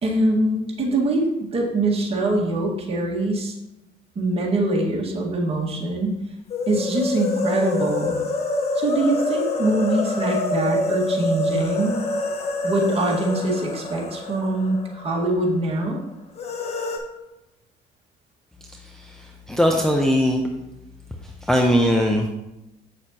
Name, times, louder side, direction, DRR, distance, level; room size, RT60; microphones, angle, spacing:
voice 1, 0.0-3.5 4.2-6.2 6.7-8.2 8.7-12.0 12.6-16.0, right 2 dB, 35° right, -3 dB, 1.8 m, -23 dB
sound 1, 6.5-15.3 15.6-15.7 16.4-17.0, left 2 dB, 40° left, 1.1 m, -26 dB
voice 2, 18.7-20.5 21.2-22.3, equal, 5° left, 0 dB, 0.7 m, -21 dB
7.7 x 6.4 x 2.9 m, 0.93 s
cardioid pair, 110°, 17 cm